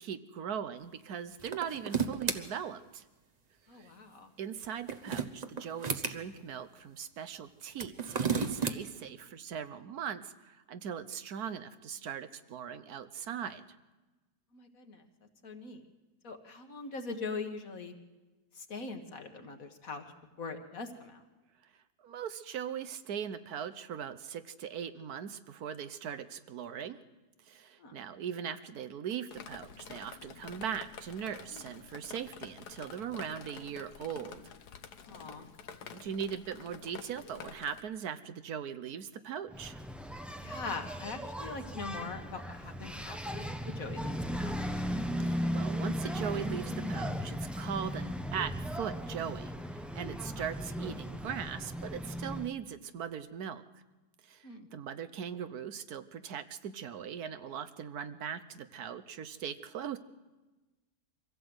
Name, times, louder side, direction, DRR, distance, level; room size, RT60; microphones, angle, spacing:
voice 1, 0.0-3.0 3.7-3.9 4.4-13.6 22.0-27.0 27.5-34.4 35.9-39.8 45.2-53.6 54.3-60.0, right 8 dB, 70° right, 11 dB, 1.4 m, -40 dB
sound 1, 1.4-2.4 4.6-6.2 7.7-8.8, right 5 dB, 30° right, 0.9 m, -32 dB
voice 2, 3.7-4.3 14.5-15.1 15.4-15.8 16.2-17.9 18.6-20.0 20.4-21.2 27.8-27.9 35.1-35.5 40.4-44.9 50.4-50.5 54.4-54.7, left 4 dB, 60° left, 6 dB, 2.0 m, -42 dB
Drip, 29.3-37.8, left 7 dB, 80° left, 1.6 m, -49 dB
Engine, 39.5-52.5, equal, ahead, 0.6 m, -37 dB
24.0 x 16.0 x 7.9 m, 1.2 s
omnidirectional pair, 1.7 m